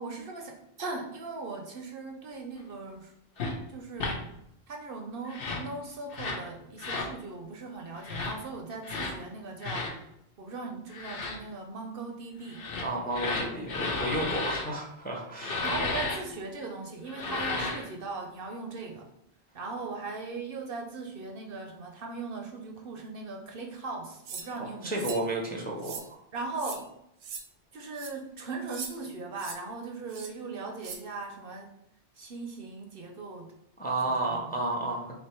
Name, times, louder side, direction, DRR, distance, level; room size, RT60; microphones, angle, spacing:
voice 1, 0.0-3.1 3.7-4.3 4.7-10.0 10.4-12.6 13.3-13.6 15.6-19.1 19.5-25.1 26.3-26.9 27.7-31.7 32.2-33.5 34.0-34.4, right 3 dB, 60° right, 2 dB, 0.7 m, -39 dB
sound 1, 3.4-3.5 4.0-4.2 5.3-5.7 6.1-6.4 6.8-7.1 8.0-8.3 8.8-9.1 9.6-9.9 10.9-11.4 12.5-14.7 15.4-16.2 17.1-17.9, left 3 dB, 55° left, 0.9 m, -33 dB
voice 2, 12.8-15.7 24.5-26.2 33.8-35.2, right 2 dB, 10° left, 0 dB, 0.5 m, -32 dB
sound 2, 24.3-24.5 25.0-25.2 25.8-26.1 26.6-26.8 27.2-27.4 27.9-28.1 28.7-28.9 29.4-29.6 30.1-30.3 30.8-31.0, right 6 dB, 90° right, 1.0 m, -39 dB
3.4 x 2.8 x 4.2 m, 0.79 s
omnidirectional pair, 1.2 m